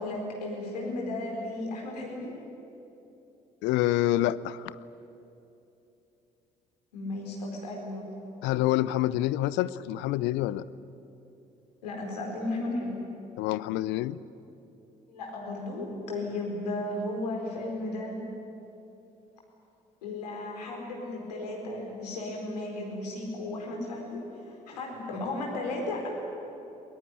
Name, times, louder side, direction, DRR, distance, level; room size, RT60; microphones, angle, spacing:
voice 1, 0.0-2.3 6.9-8.1 11.8-13.0 15.1-18.2 20.0-26.1, left 2 dB, 80° left, 0 dB, 4.5 m, -34 dB
voice 2, 3.6-4.8 8.4-10.6 13.4-14.2, left 14 dB, 65° left, 18 dB, 0.6 m, -27 dB
22.5 x 21.5 x 10.0 m, 2.9 s
figure-of-eight pair, 45°, 20 cm